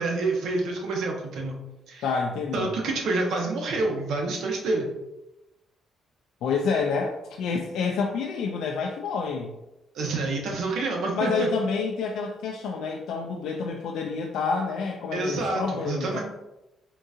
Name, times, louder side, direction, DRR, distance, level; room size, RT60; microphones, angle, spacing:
voice 1, 0.0-1.6 1.9-2.0 2.5-4.9 9.9-11.5 15.1-16.2, right 3 dB, 75° right, 0 dB, 0.8 m, -28 dB
voice 2, 2.0-2.7 6.4-9.5 11.1-16.2, left 5 dB, 80° left, 1 dB, 0.3 m, -28 dB
3.7 x 2.7 x 2.4 m, 0.95 s
cardioid pair, 90°, 0 cm